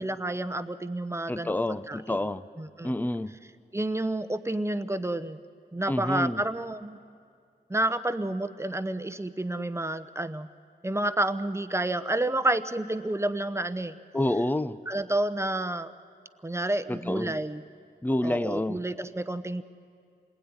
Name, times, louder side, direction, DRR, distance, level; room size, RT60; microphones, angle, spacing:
voice 1, 0.0-2.2 2.6-2.9 3.7-5.4 5.7-7.0 7.7-10.5 10.8-14.0 14.9-15.9 16.4-17.6 18.2-19.6, right 1 dB, 15° right, 12 dB, 1.0 m, -30 dB
voice 2, 1.3-2.4 2.8-3.4 5.9-6.4 14.1-14.8 16.9-17.3 18.0-18.8, left 1 dB, 10° left, 14 dB, 0.7 m, -28 dB
27.0 x 20.5 x 9.7 m, 2.2 s
cardioid pair, 60°, 18 cm